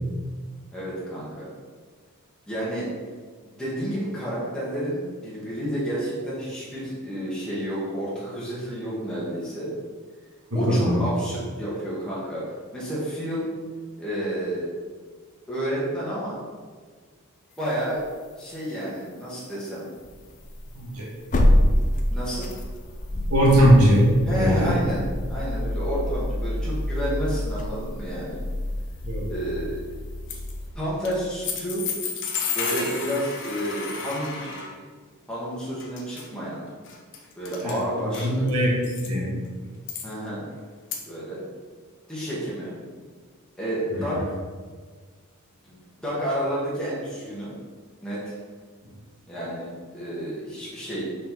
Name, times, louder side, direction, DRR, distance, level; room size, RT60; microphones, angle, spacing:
voice 1, 0.7-1.5 2.5-2.9 3.4-9.7 10.5-12.4 12.7-13.5 14.0-14.7 15.5-16.4 17.6-18.0 18.4-19.9 22.1-22.5 24.3-28.4 29.3-29.8 30.7-31.8 32.5-34.6 35.3-36.6 37.3-38.5 40.0-40.4 41.1-41.5 42.1-42.8 43.6-44.2 45.6-47.5 48.0-48.3 49.3-51.0, equal, 5° left, -8 dB, 1.6 m, -30 dB
voice 2, 10.5-11.0 20.8-21.1 23.3-24.8 29.0-29.2 37.6-37.8 38.2-38.7 39.1-39.3 43.9-44.0, equal, 80° right, -4 dB, 1.8 m, -19 dB
sound 1, 17.9-18.1 18.8-18.9 20.0-30.7, left 1 dB, 35° left, 0.6 m, -27 dB
sound 2, 30.3-30.5 31.1-31.2 31.4-34.7 35.8-36.3 36.9-37.2 37.5-37.8 38.1-39.1 39.9-40.1 40.9-41.0, left 6 dB, 55° left, 0.9 m, -32 dB
5.8 x 5.1 x 3.9 m, 1.5 s
head